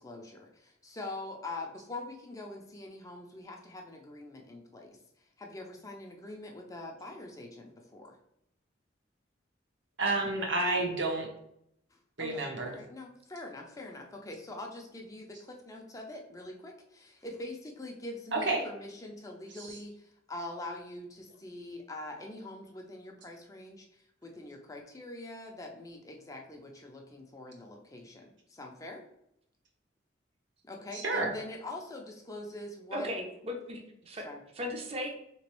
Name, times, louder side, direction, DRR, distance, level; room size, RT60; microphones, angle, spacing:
voice 1, 0.0-8.2 12.2-29.0 30.7-33.1 34.1-34.4, left 2 dB, 20° left, 1 dB, 0.4 m, -44 dB
voice 2, 10.0-11.3 12.2-12.7 18.3-18.6 19.5-19.8 30.9-31.3, right 2 dB, 70° right, 1 dB, 0.9 m, -30 dB
voice 3, 32.9-34.2 34.6-35.1, left 1 dB, 30° right, 2 dB, 0.6 m, -37 dB
3.7 x 3.0 x 3.0 m, 0.75 s
head